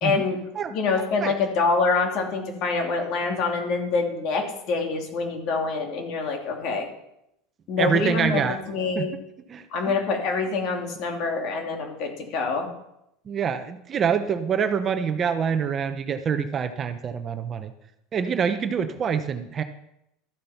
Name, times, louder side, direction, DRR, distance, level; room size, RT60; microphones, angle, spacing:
voice 1, 0.0-0.4 0.7-6.9 7.7-9.1 9.7-12.7, left 4 dB, 55° left, 3 dB, 2.7 m, -26 dB
voice 2, 7.8-8.6 8.9-9.1 9.5-9.9 13.3-17.7 18.1-19.6, right 7 dB, 30° right, 8 dB, 0.8 m, -26 dB
13.0 x 7.6 x 5.8 m, 0.81 s
supercardioid pair, 135°, 0 cm